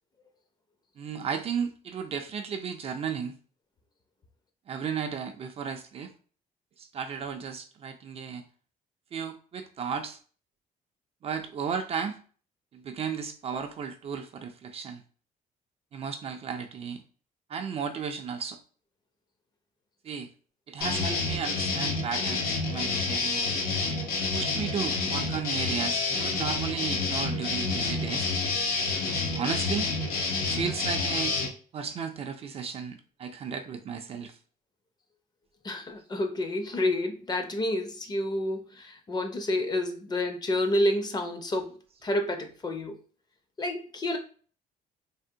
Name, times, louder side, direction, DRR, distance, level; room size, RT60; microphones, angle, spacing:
voice 1, 1.0-3.4 4.7-6.1 6.8-8.4 9.1-10.2 11.2-12.2 12.7-15.0 15.9-17.0 17.5-18.6 20.0-20.3 20.7-23.6 24.3-28.3 29.3-29.9 30.4-31.4 31.7-34.4, right 6 dB, 40° right, 0.4 m, -34 dB
sound 1, 20.8-31.5, left 3 dB, 80° left, 0.7 m, -29 dB
voice 2, 35.6-41.7 42.0-42.9 43.6-44.2, left 1 dB, 30° left, 0.5 m, -29 dB
3.4 x 2.1 x 2.7 m
cardioid pair, 115°, 15 cm